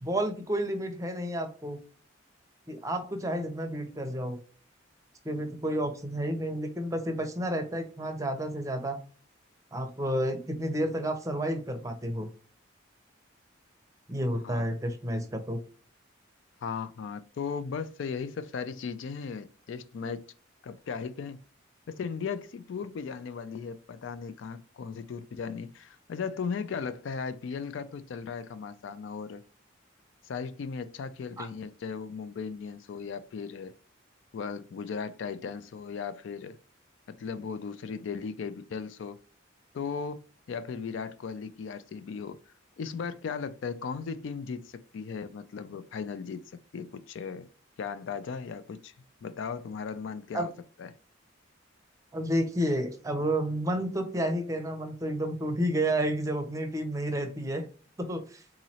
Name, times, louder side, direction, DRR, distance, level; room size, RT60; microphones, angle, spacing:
voice 1, 0.0-1.8 2.7-4.4 5.2-9.0 9.7-12.3 14.1-15.6 31.4-31.5 50.3-50.5 52.1-57.6 58.0-58.4, right 1 dB, 15° right, 0.6 m, -30 dB
voice 2, 16.6-20.3 20.6-21.4 21.9-29.4 30.2-33.7 34.3-36.6 37.1-39.2 39.7-42.4 42.8-47.5 47.8-48.9 49.2-50.5 50.8-51.0, left 5 dB, 65° left, 0.3 m, -37 dB
3.7 x 3.0 x 2.8 m
head